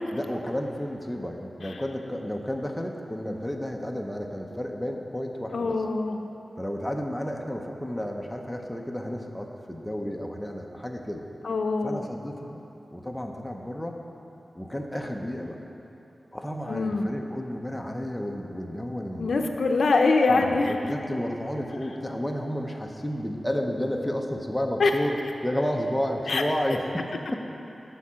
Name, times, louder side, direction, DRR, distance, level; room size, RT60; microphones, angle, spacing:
voice 1, 0.1-5.8 6.6-11.3 11.8-12.6 12.9-14.0 14.5-15.6 16.3-19.6 20.3-25.2 25.4-27.4, equal, 5° left, 2 dB, 0.6 m, -31 dB
voice 2, 5.5-6.2 11.4-12.1 16.7-17.1 19.2-20.7 24.8-24.9 26.3-26.4, left 3 dB, 75° left, 4 dB, 0.5 m, -24 dB
8.1 x 5.6 x 7.4 m, 2.9 s
wide cardioid pair, 130°, 0 cm